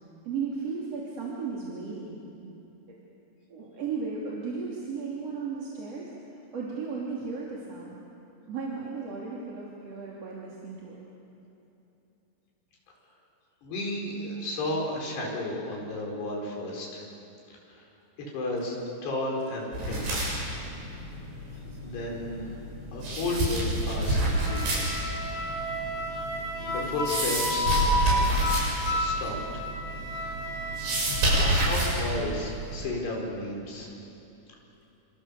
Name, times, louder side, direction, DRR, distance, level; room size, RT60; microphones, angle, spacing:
voice 1, 0.2-2.5 3.5-6.1 6.5-8.0 8.5-11.0, right 5 dB, 40° right, -5 dB, 3.5 m, -35 dB
voice 2, 13.6-17.0 17.7-17.8 18.3-20.1 21.8-22.6 22.9-25.2 25.9-26.0 26.6-27.7 28.9-29.7 31.4-33.9, left 2 dB, 70° left, -2 dB, 6.7 m, -33 dB
sound 1, 19.7-32.9, right 1 dB, 70° right, 9.3 m, -29 dB
Wind instrument woodwind instrument, 24.4-31.5, left 1 dB, 35° left, 2.4 m, -31 dB
29.0 x 26.5 x 7.0 m, 2.9 s
omnidirectional pair, 4.9 m